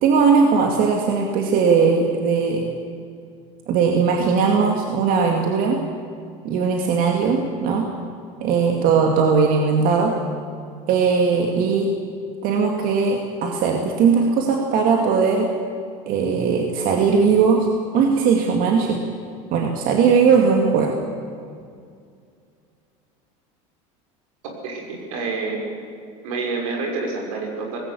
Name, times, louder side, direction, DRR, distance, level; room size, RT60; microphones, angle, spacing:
voice 1, 0.0-2.7 3.7-5.8 6.4-7.9 8.4-10.1 10.9-11.9 12.4-15.5 16.1-17.7 17.9-19.0 19.5-20.9, right 5 dB, 55° right, 1 dB, 2.2 m, -19 dB
voice 2, 24.6-25.8 26.2-27.8, right 3 dB, 85° right, 1 dB, 5.9 m, -28 dB
19.0 x 16.5 x 8.4 m, 2.3 s
supercardioid pair, 125°, 18 cm